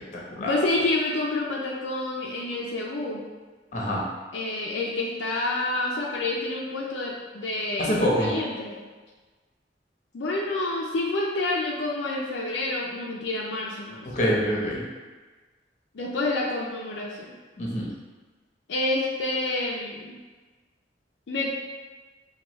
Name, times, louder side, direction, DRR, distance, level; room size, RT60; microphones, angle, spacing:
voice 1, 0.4-3.2 4.3-8.8 10.1-14.1 15.9-17.3 18.7-20.1 21.3-21.5, left 2 dB, 75° left, -3 dB, 0.5 m, -28 dB
voice 2, 3.7-4.0 7.8-8.3 14.1-14.9 17.6-17.9, equal, 45° left, -3 dB, 0.8 m, -25 dB
4.6 x 2.3 x 3.0 m, 1.3 s
head